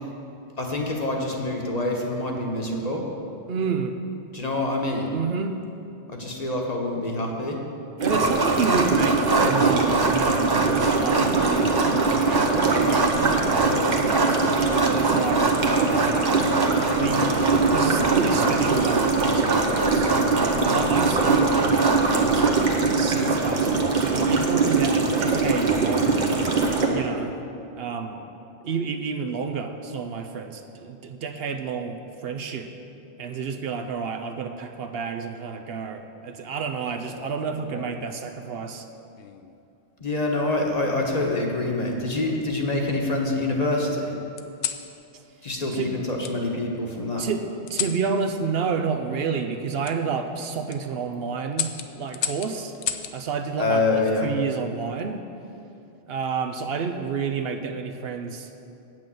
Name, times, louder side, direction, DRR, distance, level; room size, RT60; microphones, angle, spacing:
voice 1, 0.6-3.1 4.3-5.1 6.1-7.6 40.0-44.1 45.4-47.3 53.6-54.3, left 2 dB, 40° left, 0 dB, 1.2 m, -26 dB
voice 2, 3.5-4.0 5.1-5.6 8.0-11.7 12.2-14.4 14.9-15.4 16.9-22.4 22.9-26.2 26.9-27.4 27.7-28.2 28.6-32.7 33.2-38.8 45.1-45.2 45.7-45.9 47.2-52.7 53.1-55.3 56.1-58.5, right 5 dB, 70° right, 6 dB, 0.8 m, -30 dB
sound 1, 8.0-26.9, right 4 dB, 45° right, 1.0 m, -22 dB
sound 2, 8.1-22.5, right 2 dB, 30° right, 0.5 m, -25 dB
sound 3, 37.0-38.1 39.2-39.6 40.8-41.6 42.2-43.1 44.4-44.9 46.2-46.4 47.7-48.0 49.8-50.0 50.5-50.8 51.5-53.2 54.7-55.1, left 9 dB, 90° left, 0.9 m, -34 dB
8.9 x 6.1 x 7.7 m, 2.7 s
omnidirectional pair, 1.1 m